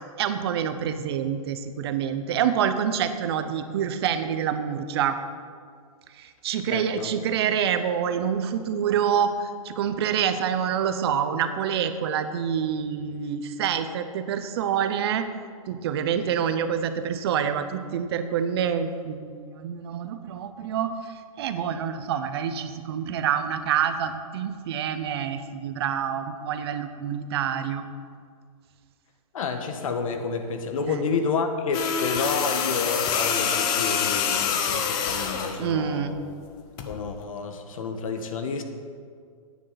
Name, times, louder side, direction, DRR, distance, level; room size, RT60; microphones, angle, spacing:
voice 1, 0.2-5.2 6.1-15.3 15.7-27.8 30.9-31.0 35.6-36.2, right 8 dB, 45° right, 9 dB, 0.8 m, -27 dB
voice 2, 6.7-7.1 29.3-36.1 36.8-38.6, left 5 dB, 70° left, 7 dB, 1.3 m, -30 dB
sound 1, 31.7-35.6 36.8-37.0, left 7 dB, 25° left, 0.7 m, -26 dB
14.0 x 9.4 x 4.1 m, 2.1 s
hypercardioid pair, 165°, 18 cm